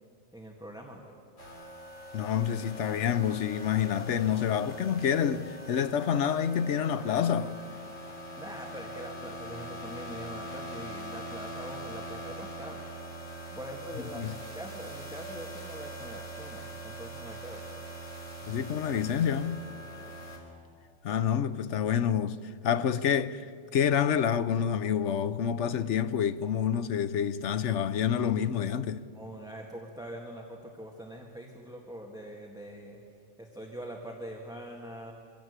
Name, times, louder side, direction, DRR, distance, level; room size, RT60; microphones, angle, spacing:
voice 1, 0.3-1.0 8.4-13.1 13.5-17.6 19.9-20.2 29.1-33.0 33.4-35.1, right 1 dB, 5° right, 1.8 m, -43 dB
sound 1, 1.4-20.4, right 1 dB, 60° left, 3.8 m, -43 dB
voice 2, 2.1-7.6 14.1-14.3 18.5-19.6 21.0-22.4 22.6-23.4 23.7-29.0, left 8 dB, 75° left, 1.0 m, -28 dB
25.0 x 15.5 x 8.1 m
omnidirectional pair, 1.2 m